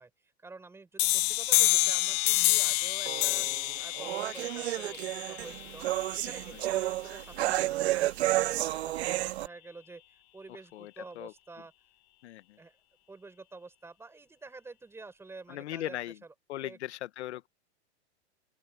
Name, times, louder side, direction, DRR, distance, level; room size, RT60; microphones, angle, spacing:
voice 1, 0.0-5.8 6.1-11.7 12.6-12.8 13.1-16.8, right 3 dB, 5° right, 6.7 m, -49 dB
sound 1, 1.0-6.4, left 21 dB, 35° left, 0.8 m, -28 dB
sound 2, 3.1-9.5, right 15 dB, 70° right, 1.6 m, -31 dB
voice 2, 15.5-16.1 16.5-17.5, left 14 dB, 80° left, 1.0 m, -38 dB
open air
supercardioid pair, 155°, 33 cm